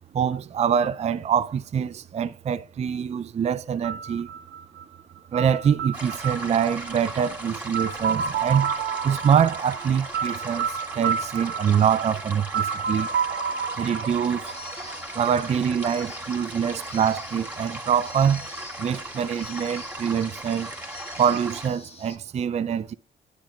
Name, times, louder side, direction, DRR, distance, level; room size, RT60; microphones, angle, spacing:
voice 1, 0.1-4.3 5.3-8.7 9.0-13.1 13.8-14.5 15.1-18.5 18.8-20.7 21.2-22.9, right 8 dB, 35° right, 0.4 m, -24 dB
sound 1, 3.8-15.6, right 7 dB, 70° right, 1.0 m, -31 dB
sound 2, 5.9-21.7, right 1 dB, 10° right, 2.4 m, -37 dB
sound 3, 14.5-22.2, left 3 dB, 30° left, 1.4 m, -45 dB
10.5 x 8.6 x 2.4 m
cardioid pair, 90°, 20 cm